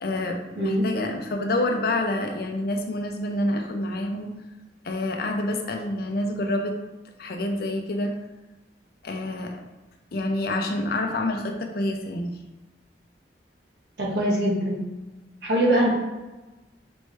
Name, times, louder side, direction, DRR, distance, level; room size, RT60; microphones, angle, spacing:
voice 1, 0.0-4.3 4.8-6.8 7.2-8.1 9.0-9.6 10.1-12.4, left 1 dB, 55° left, 3 dB, 0.6 m, -27 dB
voice 2, 14.0-14.8 15.4-15.9, right 1 dB, 65° right, -3 dB, 1.1 m, -22 dB
4.3 x 3.2 x 3.3 m, 1.1 s
head